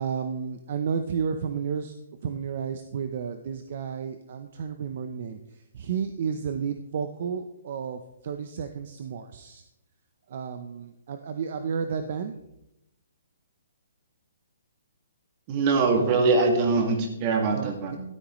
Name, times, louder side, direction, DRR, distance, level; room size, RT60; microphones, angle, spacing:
voice 1, 0.0-1.9 2.2-9.6 10.3-12.4 16.0-16.3 17.5-18.0, right 6 dB, 50° right, 8 dB, 0.7 m, -32 dB
voice 2, 15.5-18.0, right 3 dB, 30° right, 4 dB, 2.0 m, -23 dB
13.0 x 12.5 x 3.2 m, 0.87 s
hypercardioid pair, 155°, 0 cm